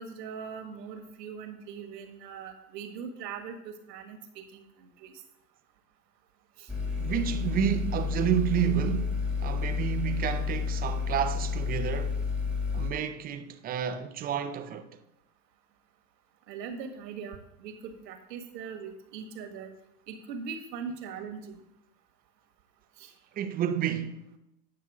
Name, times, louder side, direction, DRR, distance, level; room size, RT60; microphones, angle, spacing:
voice 1, 0.0-5.1 6.6-6.7 16.5-19.7 20.1-21.6 23.0-23.1, right 6 dB, 75° right, 1.7 m, -41 dB
sound 1, 6.7-12.9, left 5 dB, ahead, 1.3 m, -30 dB
voice 2, 7.0-12.2 12.7-14.9 23.4-24.4, right 9 dB, 20° right, 0.5 m, -30 dB
9.5 x 5.8 x 4.8 m
hypercardioid pair, 120°, 50 cm